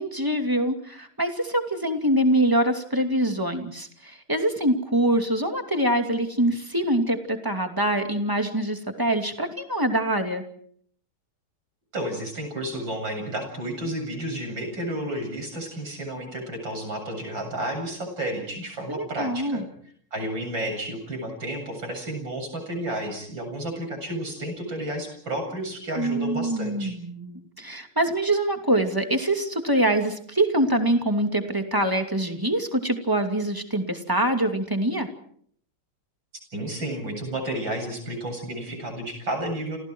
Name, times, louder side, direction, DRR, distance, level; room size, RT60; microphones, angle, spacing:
voice 1, 0.0-10.4 18.9-19.6 26.0-35.1, right 1 dB, 10° right, 5 dB, 2.6 m, -24 dB
voice 2, 11.9-19.6 20.1-26.9 36.5-39.8, right 1 dB, 60° right, 5 dB, 8.4 m, -31 dB
29.0 x 28.5 x 4.7 m, 0.62 s
omnidirectional pair, 2.4 m